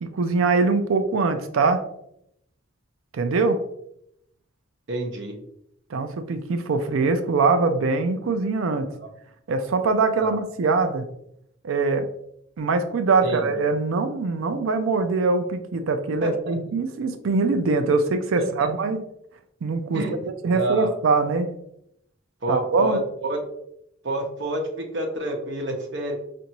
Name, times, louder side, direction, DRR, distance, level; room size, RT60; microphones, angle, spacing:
voice 1, 0.0-1.8 3.1-3.6 5.9-8.9 9.5-11.1 11.6-12.1 12.6-19.0 19.6-20.0 20.4-21.5 22.5-23.0, right 4 dB, 90° right, 8 dB, 0.4 m, -23 dB
voice 2, 4.9-5.4 10.2-10.4 13.2-13.5 16.2-16.6 18.4-18.7 19.9-20.1 20.4-20.9 22.4-23.4 24.0-26.1, right 1 dB, 60° right, 2 dB, 0.8 m, -28 dB
5.2 x 2.6 x 2.9 m, 0.76 s
head